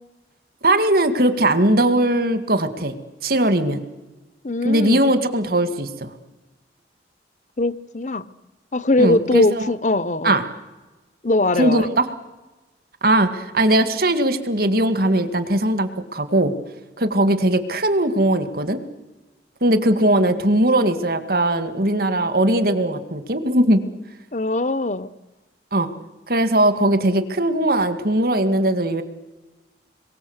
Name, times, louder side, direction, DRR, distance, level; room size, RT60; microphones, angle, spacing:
voice 1, 0.6-2.9 3.2-3.8 4.6-6.1 9.0-9.7 10.2-10.4 11.6-12.1 13.0-16.5 17.0-18.8 19.6-23.8 25.7-25.9 26.3-29.0, right 1 dB, 55° right, 10 dB, 2.1 m, -19 dB
voice 2, 4.4-5.0 7.6-8.3 8.7-10.4 11.2-11.9 24.3-25.1, left 2 dB, 40° left, 17 dB, 0.8 m, -21 dB
27.5 x 22.5 x 8.1 m, 1.1 s
head